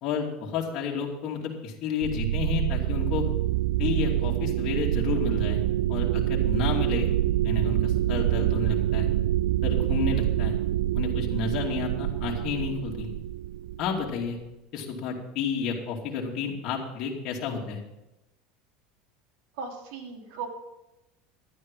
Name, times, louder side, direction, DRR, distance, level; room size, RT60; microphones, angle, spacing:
voice 1, 0.0-3.2 3.8-5.6 5.9-7.1 7.4-9.1 9.6-10.6 10.9-13.1 13.8-14.4 14.7-17.8, left 6 dB, 55° left, -2 dB, 2.6 m, -31 dB
sound 1, 2.0-14.3, right 13 dB, 85° right, 0.4 m, -26 dB
voice 2, 19.6-20.5, right 5 dB, 65° right, 1 dB, 3.0 m, -37 dB
12.0 x 9.7 x 5.5 m, 0.95 s
supercardioid pair, 125°, 0 cm